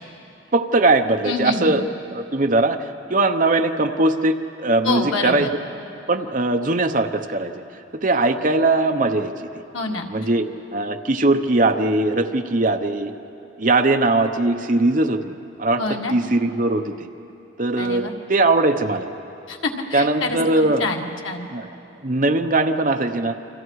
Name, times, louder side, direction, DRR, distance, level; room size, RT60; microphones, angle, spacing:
voice 1, 0.5-1.8 2.1-5.5 6.1-7.5 7.9-9.6 10.1-10.4 10.7-13.1 13.6-15.8 16.1-17.1 17.6-19.1 19.9-20.8 21.5-21.7 22.0-23.4, right 2 dB, 40° right, 6 dB, 0.9 m, -20 dB
voice 2, 1.2-1.8 4.8-5.5 9.7-10.1 15.8-16.1 17.8-18.1 19.5-21.5, left 3 dB, 85° left, 2 dB, 1.9 m, -26 dB
28.5 x 25.5 x 4.8 m, 2.9 s
head